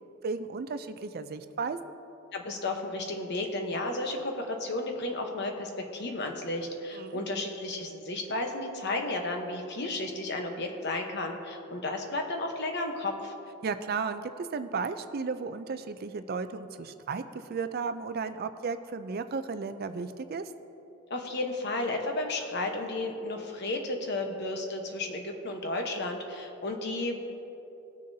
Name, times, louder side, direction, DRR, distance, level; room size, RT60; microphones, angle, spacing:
voice 1, 0.2-1.9 6.9-7.2 13.6-20.4, right 4 dB, 45° right, 10 dB, 0.4 m, -34 dB
voice 2, 2.3-13.3 21.1-27.3, left 2 dB, 55° left, 3 dB, 1.0 m, -33 dB
18.5 x 6.5 x 2.7 m, 2.9 s
head